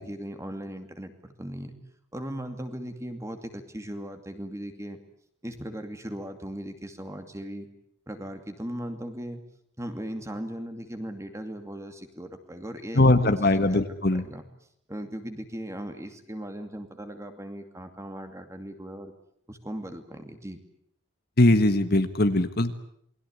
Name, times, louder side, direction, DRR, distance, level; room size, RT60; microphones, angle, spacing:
voice 1, 0.0-1.8 2.1-5.0 5.4-7.7 8.1-9.4 9.8-13.3 13.7-13.8 14.1-14.5 14.9-19.1 19.5-20.6, equal, 15° right, 7 dB, 2.5 m, -38 dB
voice 2, 12.9-14.2 21.4-22.7, left 2 dB, 50° left, 9 dB, 1.5 m, -21 dB
28.5 x 21.5 x 8.3 m, 0.69 s
head